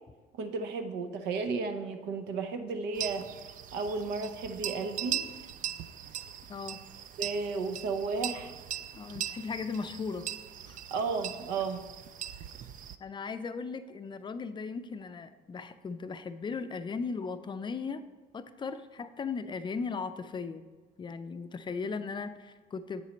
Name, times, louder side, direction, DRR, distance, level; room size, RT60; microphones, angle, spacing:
voice 1, 0.4-3.2 3.7-5.2 7.2-8.5 10.9-11.8, right 4 dB, 90° right, 7 dB, 0.8 m, -33 dB
sound 1, 2.9-13.0, right 10 dB, 50° right, 0.4 m, -40 dB
voice 2, 6.5-6.8 8.9-10.3 10.7-10.8 13.0-18.0 18.3-20.6 21.0-23.0, left 5 dB, 30° left, 11 dB, 0.4 m, -37 dB
8.3 x 4.2 x 5.1 m, 1.3 s
cardioid pair, 110°, 17 cm